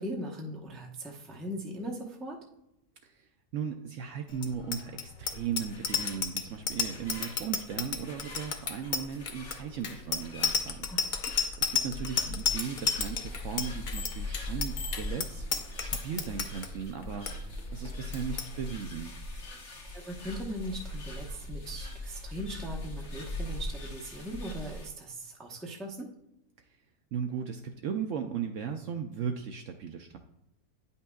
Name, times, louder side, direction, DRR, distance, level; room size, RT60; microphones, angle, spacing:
voice 1, 0.0-2.4 10.9-11.2 19.9-26.1, equal, ahead, -1 dB, 0.5 m, -39 dB
voice 2, 3.0-19.1 27.1-30.2, right 7 dB, 70° right, 5 dB, 0.8 m, -37 dB
Bicycle bell, 4.4-16.7 17.0-17.3 17.6-17.9 18.1-18.5, left 6 dB, 70° left, 0.4 m, -31 dB
sound 1, 5.2-24.9, left 1 dB, 50° left, 1.4 m, -41 dB
9.5 x 5.6 x 2.3 m, 0.85 s
omnidirectional pair, 1.6 m